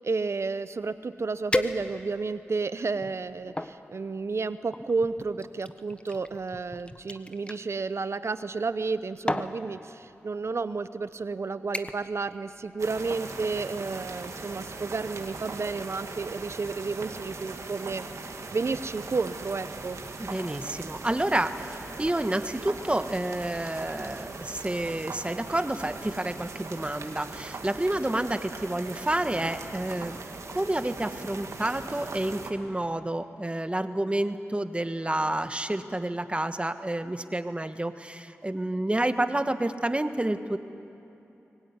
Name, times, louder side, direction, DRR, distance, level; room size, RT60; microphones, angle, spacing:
voice 1, 0.0-20.0, right 4 dB, 60° right, 13 dB, 0.9 m, -31 dB
sound 1, 0.9-1.0 1.5-2.3 2.9-3.8 4.7-7.6 8.7-8.9 9.3-9.6 10.5-10.6 11.0-11.3 11.7-12.1 12.5-12.8 13.2-13.3, left 1 dB, 20° left, 1.2 m, -34 dB
sound 2, 12.8-32.5, right 3 dB, 80° right, 2.0 m, -40 dB
voice 2, 20.2-30.2 30.5-40.6, right 1 dB, 20° right, 9 dB, 1.4 m, -29 dB
23.5 x 18.5 x 9.7 m, 2.9 s
cardioid pair, 40°, 5 cm